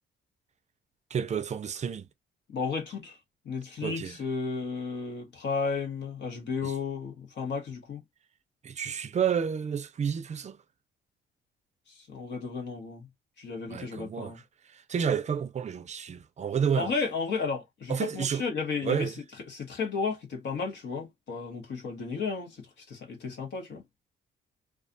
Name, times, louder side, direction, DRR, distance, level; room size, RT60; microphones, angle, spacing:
voice 1, 1.1-2.1 3.8-4.2 6.6-6.7 8.6-10.6 13.7-14.4 14.7-16.9 17.9-18.4 18.8-19.1, right 7 dB, 35° right, 0.5 m, -30 dB
voice 2, 2.5-3.2 3.4-8.0 11.9-13.0 13.4-14.4 16.7-19.1 19.5-23.8, left 5 dB, 60° left, 1.1 m, -33 dB
2.4 x 2.3 x 2.5 m
cardioid pair, 90°, 20 cm